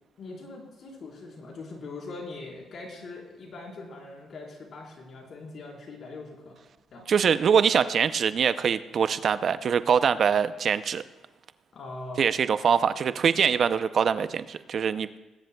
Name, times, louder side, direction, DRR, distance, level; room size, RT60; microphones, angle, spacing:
voice 1, 0.2-6.5 6.9-7.1 11.7-12.3, left 3 dB, 55° left, -2 dB, 4.3 m, -41 dB
voice 2, 7.1-11.0 12.2-15.2, right 7 dB, 55° right, 13 dB, 0.5 m, -23 dB
20.5 x 10.5 x 2.3 m, 1.2 s
cardioid pair, 90°, 0 cm